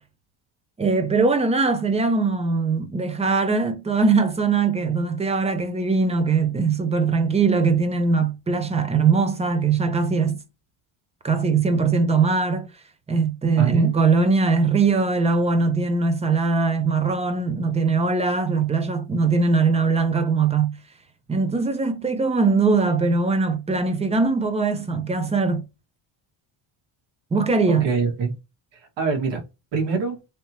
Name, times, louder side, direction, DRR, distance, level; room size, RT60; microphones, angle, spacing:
voice 1, 0.8-10.4 11.2-12.7 13.1-20.8 21.3-25.6 27.3-27.9, right 4 dB, 15° right, 0.5 m, -21 dB
voice 2, 13.6-13.9 27.7-28.3 28.7-29.4 29.7-30.2, right 5 dB, 60° right, 1.7 m, -24 dB
3.4 x 2.8 x 2.8 m
cardioid pair, 135°, 49 cm